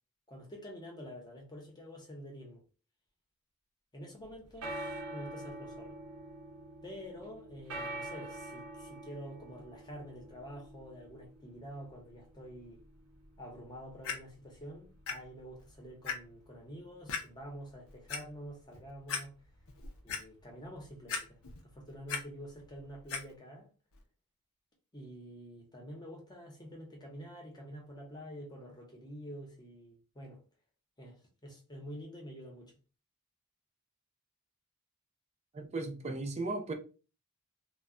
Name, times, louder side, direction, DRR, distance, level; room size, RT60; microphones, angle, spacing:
voice 1, 0.3-2.6 3.9-6.0 6.8-12.8 13.4-19.3 20.0-23.7 24.9-30.4 31.0-32.7, equal, 20° left, 0.7 m, -48 dB
sound 1, 4.2-23.3, right 1 dB, 80° right, 0.8 m, -48 dB
Clock, 14.0-14.1 15.1-15.2 15.6-15.7 16.0-16.1 17.1-17.2 17.9-18.2 18.7-18.8 19.1-19.2 19.7-20.2 21.1-21.6 21.9-22.2 23.1-23.2 23.9-24.0, left 5 dB, 65° left, 0.5 m, -36 dB
voice 2, 35.5-36.7, right 2 dB, 30° right, 0.4 m, -36 dB
2.2 x 2.1 x 3.6 m
head